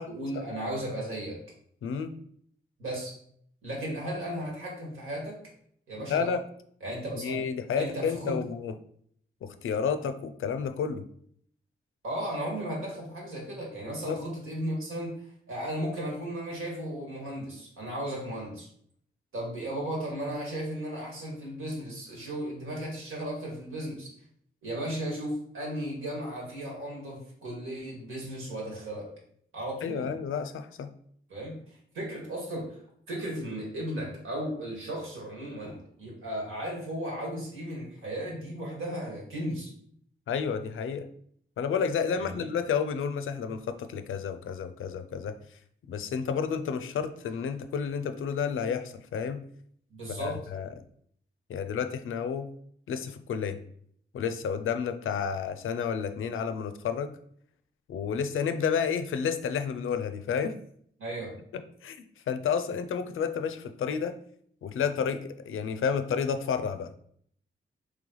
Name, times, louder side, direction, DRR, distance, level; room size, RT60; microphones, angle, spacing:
voice 1, 0.1-1.4 2.8-3.1 3.6-5.4 5.9-6.3 6.8-7.4 7.8-8.4 12.0-15.1 15.5-18.7 19.3-24.1 24.6-29.1 29.5-30.1 31.3-32.8 33.1-39.7 42.2-42.5 49.9-50.4 61.0-61.4, right 1 dB, 85° right, -2 dB, 1.7 m, -35 dB
voice 2, 1.8-2.2 6.1-6.4 7.1-8.7 9.4-11.0 13.9-14.2 29.8-30.9 40.3-41.1 41.6-45.4 45.9-49.4 50.1-50.7 51.5-52.5 52.9-53.6 54.1-57.1 57.9-60.6 61.5-62.0 62.3-64.1 64.6-67.0, left 6 dB, 80° left, 10 dB, 0.5 m, -31 dB
3.2 x 3.2 x 3.8 m, 0.64 s
cardioid pair, 60°, 21 cm